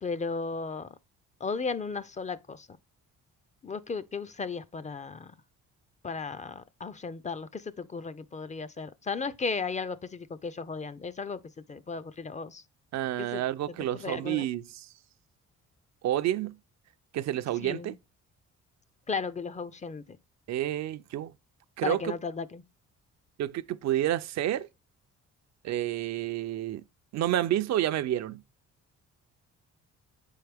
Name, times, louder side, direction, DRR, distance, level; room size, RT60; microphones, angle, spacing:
voice 1, 0.0-1.0 1.4-2.8 3.6-5.3 6.0-12.6 13.2-13.4 13.7-14.5 17.6-18.0 19.1-20.2 21.8-22.6, left 4 dB, 25° left, 0.4 m, -35 dB
voice 2, 12.9-14.9 16.0-16.6 17.1-17.9 20.5-21.3 21.8-22.1 23.4-24.7 25.6-26.8 27.1-28.4, right 12 dB, 65° right, 0.5 m, -29 dB
7.0 x 4.6 x 3.4 m
cardioid pair, 90°, 30 cm